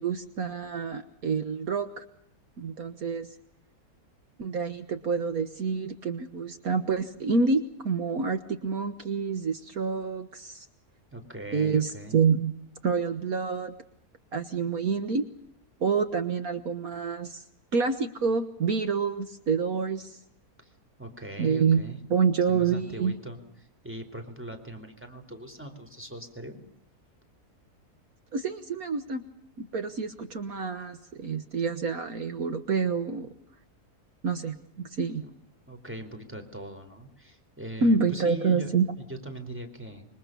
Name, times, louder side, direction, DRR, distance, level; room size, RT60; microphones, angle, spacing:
voice 1, 0.0-2.0 2.6-3.3 4.4-10.7 11.5-12.5 12.8-13.7 14.3-15.2 15.8-17.4 17.7-20.2 21.4-21.8 22.1-23.2 28.3-29.2 29.6-33.3 34.2-34.6 35.0-35.2 37.8-38.9, right 5 dB, 65° right, 9 dB, 1.8 m, -27 dB
voice 2, 11.1-12.2 20.6-20.7 21.0-22.0 22.5-23.4 23.8-26.6 35.2-35.4 35.7-40.1, right 1 dB, 5° right, 5 dB, 4.4 m, -41 dB
26.5 x 24.0 x 6.9 m, 0.71 s
omnidirectional pair, 1.6 m